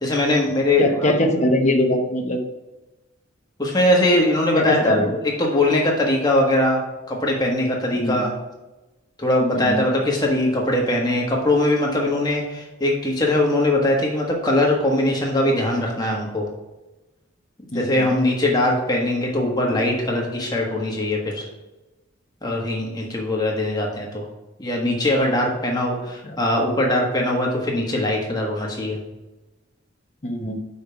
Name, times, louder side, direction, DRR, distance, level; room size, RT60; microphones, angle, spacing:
voice 1, 0.0-1.1 3.6-5.0 5.2-6.8 7.1-8.3 9.2-16.5 17.7-21.5 22.4-24.2 24.6-29.0, left 1 dB, 20° left, -1 dB, 1.4 m, -21 dB
voice 2, 0.8-2.4 4.5-5.2 7.9-8.3 9.5-9.8 17.7-18.0 26.2-26.4 30.2-30.6, left 1 dB, 35° left, 3 dB, 0.9 m, -22 dB
5.6 x 5.2 x 5.7 m, 1.1 s
head